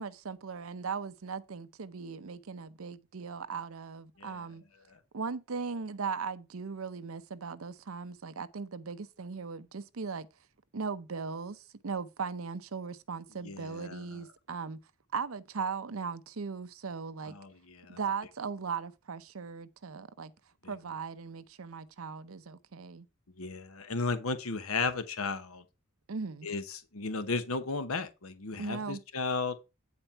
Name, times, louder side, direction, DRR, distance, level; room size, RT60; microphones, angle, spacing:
voice 1, 0.0-4.6 5.1-10.3 10.7-14.8 15.1-17.3 17.9-20.3 20.7-23.1 26.1-26.5 28.6-29.0, right 5 dB, 75° right, 0.7 m, -38 dB
voice 2, 13.4-14.0 17.3-18.0 20.6-20.7 23.4-25.6 26.4-29.6, left 4 dB, 85° left, 1.0 m, -34 dB
9.5 x 4.4 x 5.6 m
head